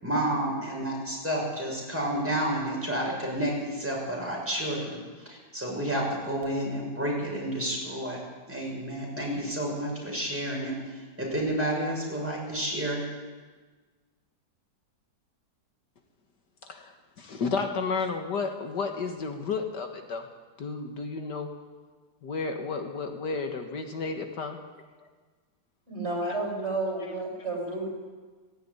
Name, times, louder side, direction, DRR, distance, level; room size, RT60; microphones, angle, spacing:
voice 1, 0.0-5.0 5.2-8.2 8.5-10.7 11.2-13.0, right 1 dB, 5° right, -3 dB, 6.5 m, -30 dB
voice 2, 16.6-20.3 20.6-21.6 22.2-24.6 26.2-26.4, left 4 dB, 70° left, 5 dB, 2.1 m, -32 dB
voice 3, 25.9-27.9, right 2 dB, 35° right, 0 dB, 5.5 m, -31 dB
16.5 x 16.5 x 9.9 m, 1.4 s
omnidirectional pair, 1.9 m